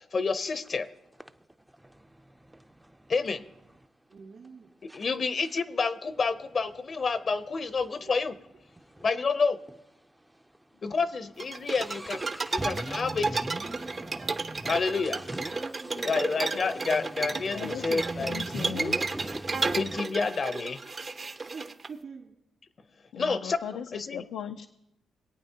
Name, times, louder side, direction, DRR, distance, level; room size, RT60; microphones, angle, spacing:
voice 1, 0.1-0.9 3.1-3.4 4.9-8.3 9.0-9.6 10.8-12.2 12.5-13.5 14.6-15.3 16.0-18.3 19.7-20.8 23.2-24.2, left 4 dB, 50° left, 12 dB, 0.7 m, -29 dB
sound 1, 0.6-0.8 1.2-3.8 4.4-4.5 4.9-5.1 5.4-9.1 9.4-9.5 9.7-9.8 10.4-10.6 10.9-20.0, right 1 dB, 10° right, 0.5 m, -41 dB
voice 2, 4.1-4.7 8.0-8.1 15.7-17.3 21.4-22.4, right 5 dB, 60° right, -5 dB, 2.6 m, -47 dB
sound 2, 11.4-21.9, right 3 dB, 40° right, 0.7 m, -33 dB
voice 3, 17.3-19.0 23.1-24.7, left 8 dB, 85° left, 7 dB, 0.4 m, -38 dB
22.5 x 8.7 x 2.8 m, 0.87 s
supercardioid pair, 65°, 0 cm